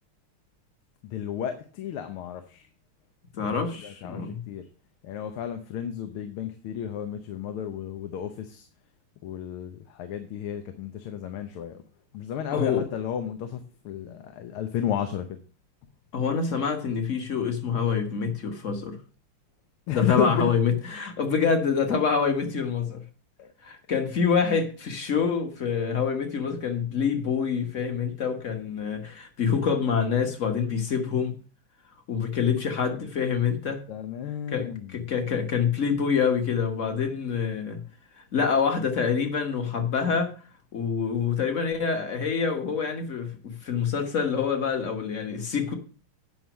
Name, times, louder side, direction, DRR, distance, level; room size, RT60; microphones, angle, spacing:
voice 1, 1.0-2.7 3.3-4.7 5.0-8.7 9.2-11.8 12.1-15.4 19.9-20.5 23.4-23.5 33.9-35.1, left 9 dB, 85° left, 1.8 m, -32 dB
voice 2, 3.4-4.4 12.5-12.8 16.1-19.0 19.9-23.0 23.6-31.3 32.1-33.8 34.5-34.7 34.9-37.8 38.3-40.3 40.7-45.7, left 6 dB, 40° left, 1.5 m, -26 dB
9.1 x 5.6 x 6.1 m
omnidirectional pair, 2.3 m